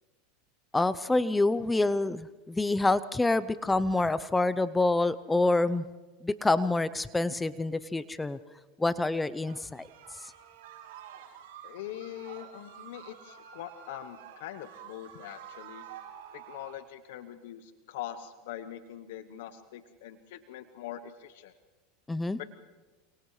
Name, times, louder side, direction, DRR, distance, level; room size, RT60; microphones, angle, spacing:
voice 1, 0.7-5.8 6.2-8.4 8.8-9.9 10.2-10.3 22.1-22.4, left 2 dB, 10° left, 16 dB, 0.6 m, -27 dB
sound 1, 9.4-16.8, right 9 dB, 70° right, 6.7 m, -49 dB
voice 2, 11.6-15.8 16.3-21.5 22.4-22.5, left 11 dB, 70° left, 11 dB, 1.0 m, -43 dB
29.5 x 28.0 x 3.3 m, 1.2 s
hypercardioid pair, 105°, 0 cm